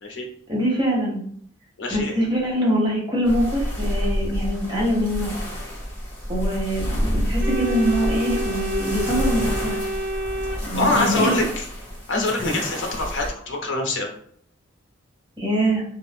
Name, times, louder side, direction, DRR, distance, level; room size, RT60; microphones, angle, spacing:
voice 1, 0.5-1.2 1.9-5.3 6.3-9.8 10.7-11.3 15.4-15.8, equal, 20° right, -3 dB, 0.8 m, -23 dB
voice 2, 1.8-2.1 10.8-11.6 12.1-14.1, left 2 dB, 60° left, 2 dB, 0.6 m, -24 dB
sound 1, 3.2-13.3, equal, 10° left, 1.3 m, -28 dB
Organ, 7.4-11.3, right 1 dB, 60° right, 0.8 m, -29 dB
2.5 x 2.1 x 3.2 m, 0.62 s
head